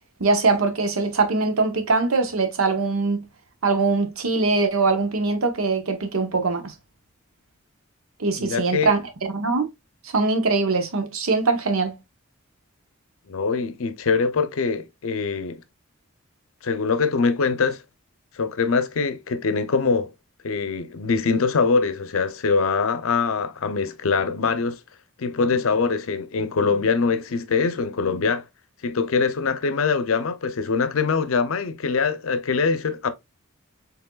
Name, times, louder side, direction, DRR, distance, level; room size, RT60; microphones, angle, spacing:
voice 1, 0.2-3.3 3.6-6.7 8.2-9.7 10.1-12.0, right 3 dB, 85° right, 0.9 m, -22 dB
voice 2, 8.4-8.9 13.3-15.6 16.6-17.8 18.3-20.1 20.4-24.8 25.2-28.4 28.8-33.1, left 4 dB, 75° left, 0.6 m, -23 dB
4.5 x 3.4 x 2.3 m
head